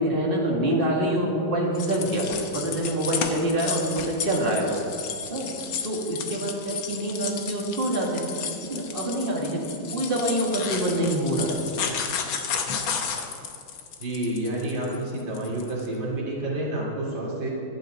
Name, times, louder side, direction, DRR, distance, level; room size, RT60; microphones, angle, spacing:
voice 1, 0.0-4.8 5.3-9.6 9.9-11.6, right 1 dB, 30° right, -3 dB, 2.3 m, -26 dB
sound 1, 1.8-15.9, left 6 dB, 85° left, 1.9 m, -33 dB
voice 2, 14.0-17.5, right 1 dB, 70° right, -5 dB, 3.4 m, -29 dB
24.0 x 8.6 x 3.9 m, 2.6 s
omnidirectional pair, 2.1 m